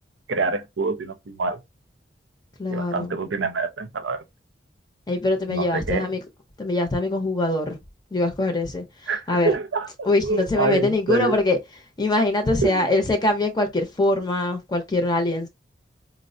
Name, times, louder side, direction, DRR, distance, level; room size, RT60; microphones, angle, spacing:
voice 1, 0.3-1.6 2.7-4.2 5.5-6.1 9.1-11.4 12.6-12.9, right 4 dB, 80° right, 0.6 m, -26 dB
voice 2, 2.6-3.2 5.1-6.2 6.6-7.8 8.1-8.8 9.3-9.5 10.0-11.6 12.0-15.5, left 2 dB, 20° left, 0.6 m, -23 dB
4.3 x 2.0 x 2.6 m
head